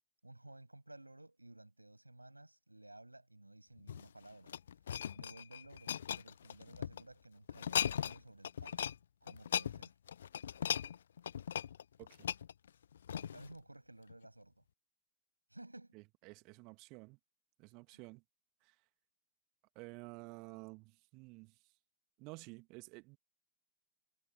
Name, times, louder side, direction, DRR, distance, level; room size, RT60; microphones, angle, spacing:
voice 1, 0.2-4.6 5.1-9.9 13.1-14.7 15.5-16.0 17.9-18.0, right 1 dB, 85° right, 7.3 m, -56 dB
sound 1, 3.8-7.0 7.5-8.2 8.4-9.0 9.3-13.5 14.1-14.2, left 9 dB, 65° left, 0.6 m, -38 dB
voice 2, 12.0-12.3 15.9-17.2 17.6-18.2 18.6-18.8 19.8-21.6 22.2-23.2, right 27 dB, 40° right, 1.9 m, -52 dB
figure-of-eight pair, 90°, 0 cm